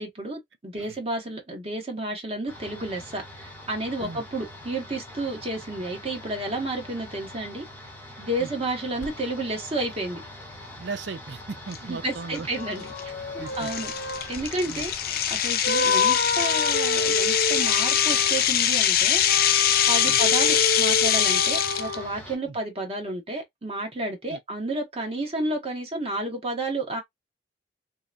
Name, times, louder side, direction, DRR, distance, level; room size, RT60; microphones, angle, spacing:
voice 1, 0.0-7.6 8.2-10.2 11.8-13.9 14.3-19.2 19.9-27.0, right 2 dB, 35° right, 1.0 m, -31 dB
sound 1, 2.5-22.4, left 1 dB, 10° left, 0.8 m, -43 dB
sound 2, 9.0-9.1 12.5-15.3 15.6-18.5 19.1-22.1, left 3 dB, 80° left, 0.7 m, -29 dB
voice 2, 10.8-12.5 13.4-13.7 14.7-14.9 20.0-20.2 24.3-24.4, right 4 dB, 85° right, 0.5 m, -37 dB
sound 3, 11.7-11.8 12.4-12.5 13.0-13.1 13.6-21.9, left 10 dB, 55° left, 0.4 m, -23 dB
2.8 x 2.1 x 2.4 m
head